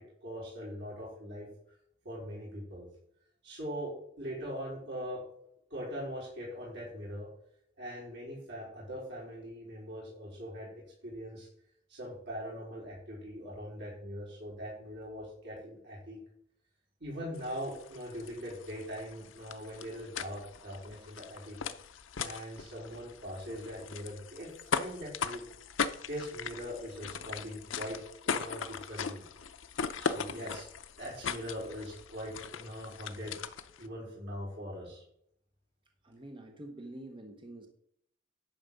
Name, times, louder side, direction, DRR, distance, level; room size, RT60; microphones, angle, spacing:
voice 1, 0.0-1.5 2.0-2.9 3.4-5.2 5.7-7.3 7.8-11.5 11.9-16.2 17.0-21.6 22.2-25.4 26.1-28.0 28.2-29.2 30.0-30.7 31.0-33.4 33.8-35.0, equal, 60° right, 4.3 m, -41 dB
sound 1, 17.3-33.9, left 6 dB, 75° left, 0.7 m, -39 dB
voice 2, 36.0-37.7, right 1 dB, 25° right, 1.0 m, -47 dB
10.5 x 4.8 x 6.7 m
head